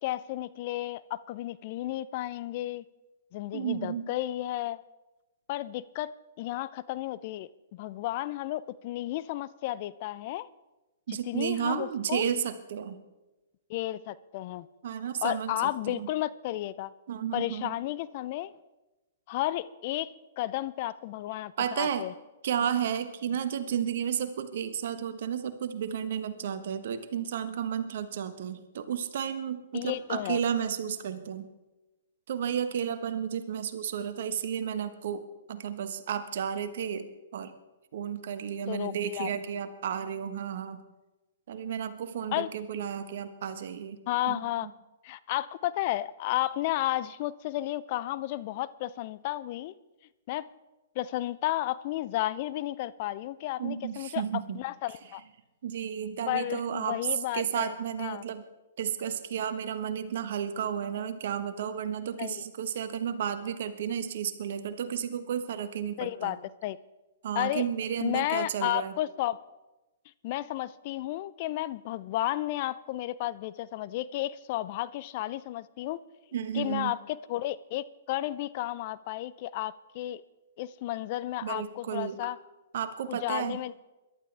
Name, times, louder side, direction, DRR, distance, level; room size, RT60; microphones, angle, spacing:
voice 1, 0.0-2.8 3.3-4.8 5.5-10.5 11.3-12.2 13.7-14.7 15.2-16.9 17.3-18.5 19.3-22.1 29.7-30.4 38.7-39.3 42.3-42.5 44.1-44.7 45.0-49.7 50.3-50.5 51.0-55.2 56.3-57.7 58.0-58.2 62.2-62.4 66.0-66.8 67.3-67.7 68.0-69.4 70.2-76.0 76.5-80.2 80.6-82.4 83.1-83.7, left 15 dB, 45° left, 17 dB, 0.5 m, -33 dB
voice 2, 3.5-4.1 11.1-13.0 14.8-15.5 15.9-16.1 17.1-17.8 21.6-22.1 22.4-31.5 32.3-37.5 37.9-40.8 41.5-44.0 44.3-44.7 53.6-54.6 55.6-58.4 58.8-66.3 67.2-68.9 76.3-77.0 81.4-82.3 82.7-83.6, right 8 dB, 60° right, 10 dB, 1.3 m, -32 dB
22.5 x 11.5 x 3.4 m, 1.1 s
hypercardioid pair, 120°, 0 cm